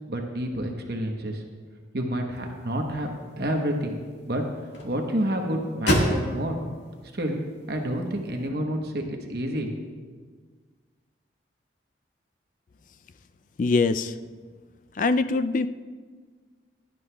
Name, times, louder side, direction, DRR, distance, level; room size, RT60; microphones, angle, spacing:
voice 1, 0.1-1.4 1.9-3.1 3.4-4.0 4.3-4.4 4.8-6.6 7.1-7.4 7.7-9.7, right 1 dB, 55° right, 2 dB, 1.0 m, -28 dB
sound 1, 2.3-8.5, equal, 70° left, 1.7 m, -32 dB
voice 2, 13.6-14.2 14.9-15.7, left 3 dB, 45° left, 12 dB, 0.3 m, -23 dB
16.5 x 11.0 x 2.3 m, 1.6 s
head